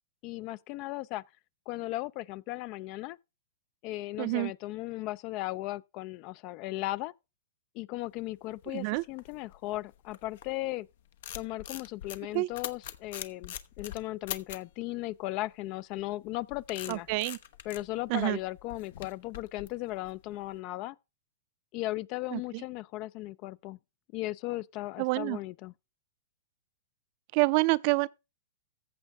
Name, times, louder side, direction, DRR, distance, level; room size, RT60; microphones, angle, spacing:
voice 1, 0.2-1.2 1.7-3.2 3.8-7.1 7.7-10.9 11.3-17.1 17.6-21.0 21.7-23.8 24.1-25.7, left 18 dB, 40° left, 0.4 m, -36 dB
voice 2, 4.2-4.5 8.7-9.0 12.3-12.5 16.9-17.4 18.1-18.4 22.3-22.6 25.0-25.4 27.3-28.1, right 24 dB, 45° right, 0.5 m, -27 dB
sound 1, 8.3-10.7 11.0-14.7 16.0-20.5, left 11 dB, 65° left, 1.0 m, -43 dB
14.5 x 7.2 x 3.5 m
hypercardioid pair, 130°, 0 cm